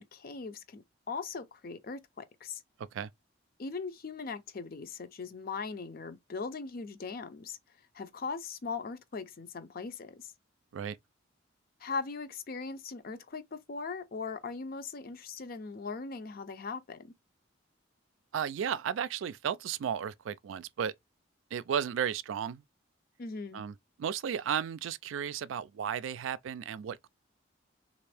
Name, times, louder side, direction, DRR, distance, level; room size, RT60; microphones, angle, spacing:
voice 1, 0.0-2.6 3.6-7.6 7.9-10.3 11.8-17.1 23.2-23.6, left 4 dB, 50° left, 0.5 m, -39 dB
voice 2, 18.3-20.9 21.5-22.6 23.5-27.1, right 8 dB, 85° right, 0.3 m, -34 dB
3.4 x 2.5 x 3.3 m
head